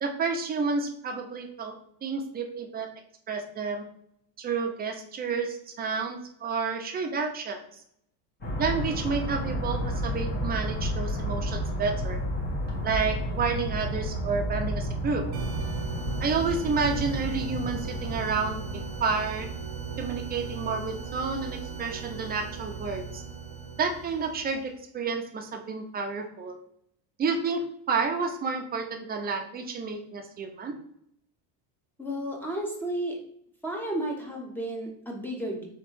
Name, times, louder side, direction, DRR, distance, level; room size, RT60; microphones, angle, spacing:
voice 1, 0.0-1.7 2.0-2.9 3.3-3.8 4.4-7.6 8.6-12.2 12.8-15.2 16.2-19.5 20.0-23.2 23.8-26.6 27.2-30.7, right 4 dB, 25° right, 4 dB, 0.6 m, -30 dB
sound 1, 8.4-20.0, equal, 25° left, 1.2 m, -32 dB
sound 2, 15.3-24.7, right 6 dB, 90° right, 0.9 m, -38 dB
voice 2, 32.0-33.1 33.6-35.7, right 1 dB, 5° left, -1 dB, 0.9 m, -32 dB
3.7 x 3.1 x 4.5 m, 0.69 s
cardioid pair, 145°, 37 cm